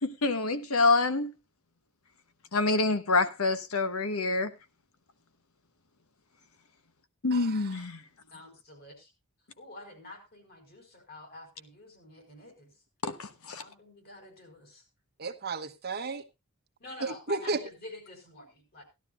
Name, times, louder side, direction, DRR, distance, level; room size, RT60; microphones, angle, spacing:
voice 1, 0.0-1.3 2.5-4.5 7.2-8.0 13.0-13.6, left 3 dB, 85° left, 1.2 m, -27 dB
voice 2, 7.3-7.7 15.2-16.2 17.0-17.6, right 3 dB, 50° right, 1.2 m, -33 dB
voice 3, 8.3-9.1 9.6-12.7 13.6-14.8 16.8-18.8, left 2 dB, 45° left, 4.7 m, -48 dB
17.0 x 12.0 x 2.4 m
head